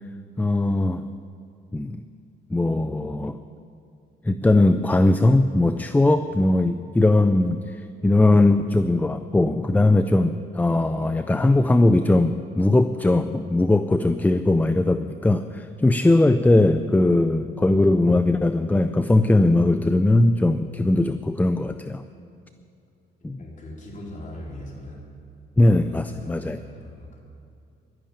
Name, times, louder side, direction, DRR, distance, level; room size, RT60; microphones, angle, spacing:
voice 1, 0.4-1.1 1.7-2.0 2.5-3.4 4.2-22.0 23.2-23.4 25.6-26.6, left 2 dB, 10° left, 10 dB, 0.4 m, -20 dB
voice 2, 23.4-25.0 25.8-27.2, left 1 dB, 40° left, -3 dB, 4.2 m, -40 dB
11.5 x 11.0 x 8.7 m, 2.5 s
cardioid pair, 90°, 20 cm